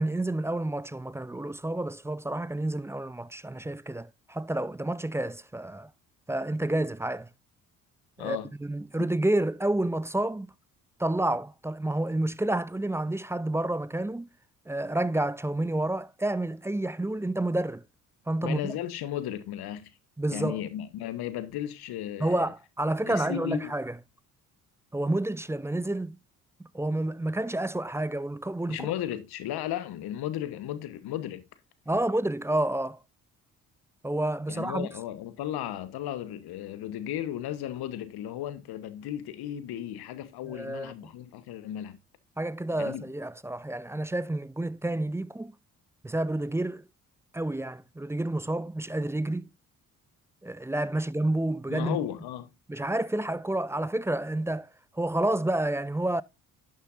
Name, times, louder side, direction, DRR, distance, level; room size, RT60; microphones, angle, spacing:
voice 1, 0.0-5.9 6.3-7.3 8.2-10.5 11.0-14.3 14.7-17.8 18.3-18.7 20.2-20.6 22.2-23.9 24.9-26.2 26.6-28.9 31.9-33.0 34.0-34.9 40.5-41.1 42.4-45.5 46.0-46.8 47.3-49.5 50.4-52.0 52.7-54.7 54.9-56.2, right 1 dB, 5° right, 0.4 m, -29 dB
voice 2, 8.2-8.5 18.4-19.9 20.3-22.5 23.1-23.7 28.7-31.4 34.5-42.0 42.8-43.0 51.7-52.5, left 11 dB, 65° left, 1.1 m, -35 dB
11.5 x 6.7 x 2.5 m
hypercardioid pair, 50°, 40 cm